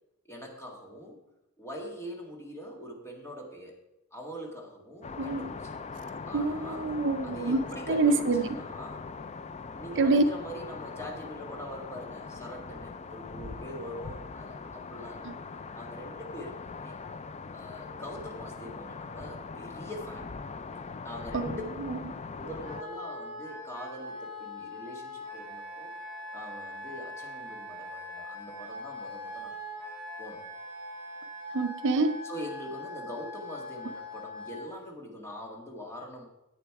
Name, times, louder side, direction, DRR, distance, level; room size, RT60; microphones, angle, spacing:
voice 1, 0.3-1.2 1.6-3.7 4.1-5.8 6.3-6.9 7.2-9.0 9.7-15.4 15.7-17.0 17.5-20.3 21.0-21.8 22.3-25.9 26.3-29.8 30.2-30.4 32.2-36.3, equal, 10° left, 0 dB, 1.8 m, -43 dB
sound 1, 5.0-22.8, left 4 dB, 30° left, 0.4 m, -41 dB
voice 2, 5.2-5.5 6.3-7.6 7.9-8.5 9.9-10.2 21.3-21.6 21.9-22.0 31.5-32.2, right 3 dB, 55° right, 9 dB, 0.6 m, -26 dB
Wind instrument woodwind instrument, 22.6-34.7, left 1 dB, 15° right, 4.0 m, -42 dB
11.0 x 8.3 x 4.7 m, 0.92 s
head